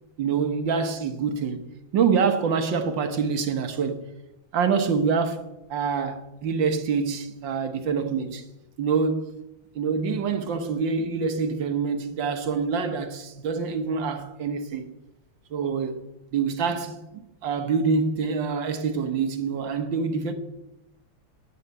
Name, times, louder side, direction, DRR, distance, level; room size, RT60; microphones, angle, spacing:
voice 1, 0.2-1.7 1.9-4.0 4.5-5.4 5.7-8.4 8.8-9.3 9.8-14.9 15.5-16.0 16.3-20.3, right 5 dB, 70° right, 2.0 m, -26 dB
10.0 x 9.6 x 8.9 m
omnidirectional pair, 2.1 m